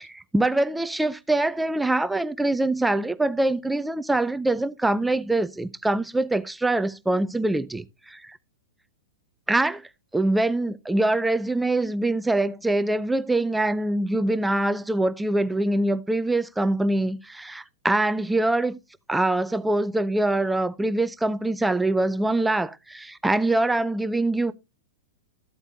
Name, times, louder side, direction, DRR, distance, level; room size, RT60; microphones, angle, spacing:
voice 1, 0.0-8.4 9.5-9.9 10.1-18.8 19.1-24.5, right 2 dB, 5° right, 0.5 m, -24 dB
14.0 x 8.1 x 2.7 m
hypercardioid pair, 110°, 0 cm